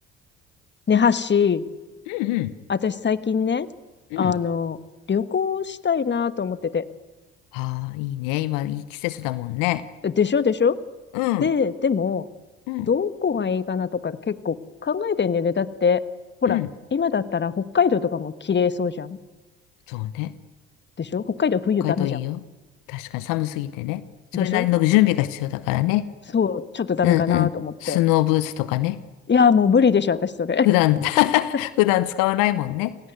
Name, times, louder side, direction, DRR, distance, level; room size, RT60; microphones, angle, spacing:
voice 1, 0.9-1.6 2.7-3.7 4.2-4.8 5.1-6.8 10.0-10.8 11.4-12.3 12.9-14.6 14.8-16.0 16.4-16.6 16.9-19.2 21.0-22.2 24.3-24.7 26.3-28.0 29.3-30.7, left 6 dB, 35° left, 14 dB, 1.4 m, -22 dB
voice 2, 2.1-2.5 4.1-4.3 7.5-9.8 11.1-11.5 12.7-12.9 16.5-16.7 19.9-20.3 21.8-22.4 22.9-24.1 24.3-26.1 27.0-27.5 27.8-29.0 30.6-33.0, left 16 dB, 75° left, 16 dB, 0.9 m, -23 dB
28.0 x 17.5 x 9.4 m, 1.2 s
hypercardioid pair, 55°, 33 cm